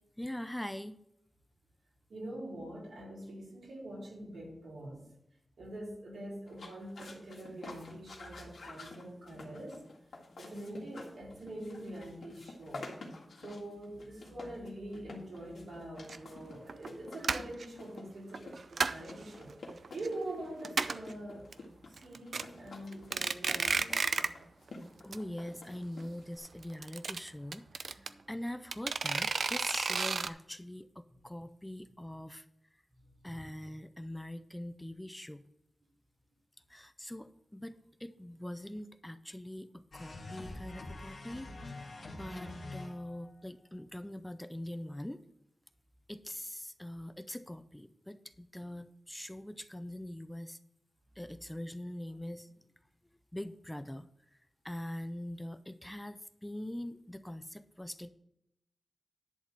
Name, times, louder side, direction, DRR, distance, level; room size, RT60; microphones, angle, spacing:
voice 1, 0.2-1.0 25.0-32.4 33.2-35.5 36.7-41.9 42.2-45.2 46.1-50.6 51.2-52.5 53.3-54.1 54.6-58.1, left 1 dB, 10° left, 12 dB, 0.4 m, -43 dB
voice 2, 2.1-5.1 5.6-9.8 10.4-12.9 13.4-19.5 19.9-21.5 21.9-24.1 31.1-31.2 32.9-33.3, right 1 dB, 85° right, -5 dB, 4.7 m, -44 dB
sound 1, 6.5-26.4, left 3 dB, 90° left, 1.9 m, -50 dB
sound 2, 16.1-16.2 16.7-16.9 17.2-17.6 18.3-19.1 19.5-20.1 20.3-20.4 20.6-21.1 21.5-21.6 22.0-22.4 22.9-24.4 24.7-24.8 25.1-25.2 25.5-25.6 26.6-28.1 28.7-30.3, right 5 dB, 70° right, 0.5 m, -32 dB
sound 3, 39.9-43.3, left 2 dB, 60° left, 1.9 m, -45 dB
11.0 x 4.1 x 7.8 m, 0.80 s
wide cardioid pair, 115°, 0 cm